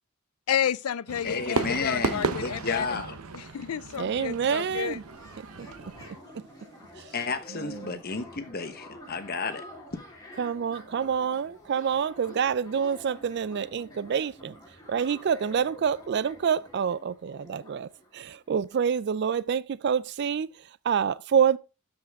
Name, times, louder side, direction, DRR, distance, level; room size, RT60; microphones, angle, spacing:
voice 1, 0.5-3.0 3.3-5.0, left 9 dB, 85° left, 0.4 m, -31 dB
Fireworks, 1.1-6.1, right 4 dB, 90° right, 0.8 m, -34 dB
voice 2, 1.2-3.1 7.1-9.6, left 4 dB, 45° left, 1.1 m, -32 dB
voice 3, 4.0-5.0 5.6-5.9 6.3-6.4 7.0-7.1 7.5-8.0 10.4-14.6 14.9-21.6, right 7 dB, 50° right, 0.3 m, -27 dB
sound 1, 4.2-18.8, equal, 15° left, 3.7 m, -49 dB
12.5 x 5.4 x 3.6 m
head